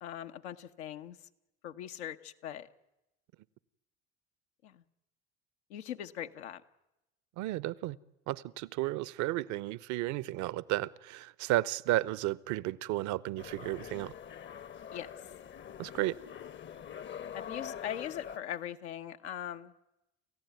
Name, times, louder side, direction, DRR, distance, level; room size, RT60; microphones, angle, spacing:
voice 1, 0.0-1.2 1.6-2.7 4.6-4.8 5.7-6.6 14.9-15.1 17.3-19.7, left 10 dB, 85° left, 1.1 m, -40 dB
voice 2, 7.4-8.0 8.3-14.1 15.8-16.1, right 16 dB, 65° right, 0.8 m, -33 dB
sound 1, 13.4-18.4, left 8 dB, 35° left, 0.8 m, -44 dB
28.5 x 15.0 x 9.3 m
hypercardioid pair, 65°, 32 cm